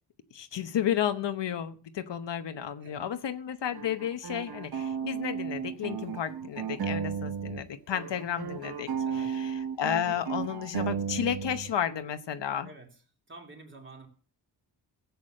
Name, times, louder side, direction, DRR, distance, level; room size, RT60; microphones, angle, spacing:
voice 1, 0.3-8.9 9.1-12.7, left 9 dB, 75° left, 10 dB, 1.0 m, -32 dB
voice 2, 2.8-3.1 8.0-8.3 9.0-9.3 12.6-13.0 13.3-14.1, right 2 dB, 25° right, 1 dB, 2.9 m, -49 dB
sound 1, 3.7-7.6 7.9-11.7, right 7 dB, 60° right, 1.2 m, -34 dB
16.0 x 8.3 x 6.5 m, 0.41 s
wide cardioid pair, 175°, 43 cm